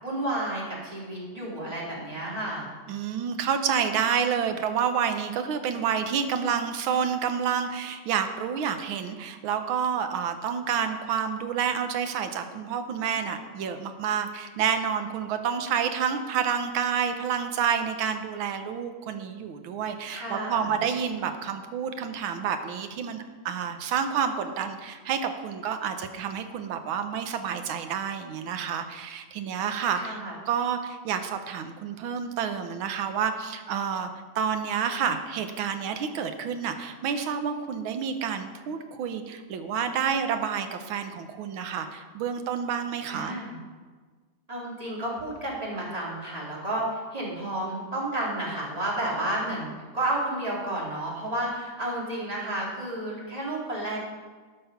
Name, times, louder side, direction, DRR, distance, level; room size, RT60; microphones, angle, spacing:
voice 1, 0.0-2.7 20.1-20.8 29.9-30.3 43.1-43.6 44.5-49.7 49.9-54.0, right 1 dB, 20° right, -5 dB, 2.4 m, -31 dB
voice 2, 2.9-30.2 30.5-34.1 34.3-43.4, right 7 dB, 80° right, 8 dB, 1.6 m, -29 dB
12.5 x 5.4 x 5.8 m, 1.4 s
omnidirectional pair, 2.2 m